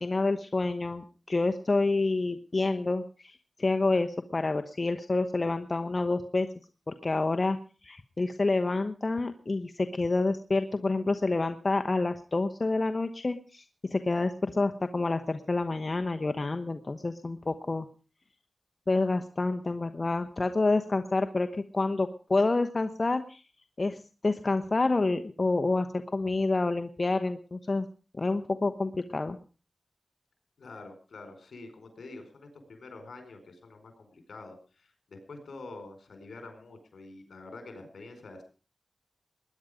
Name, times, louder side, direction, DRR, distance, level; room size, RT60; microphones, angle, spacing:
voice 1, 0.0-6.5 6.9-7.6 7.8-13.6 13.9-17.9 18.9-23.4 23.8-27.9 28.1-29.4, left 3 dB, 50° left, 7 dB, 1.1 m, -28 dB
voice 2, 30.6-38.4, left 3 dB, 85° left, 6 dB, 4.8 m, -47 dB
20.5 x 10.5 x 5.1 m, 0.37 s
cardioid pair, 40°, 0 cm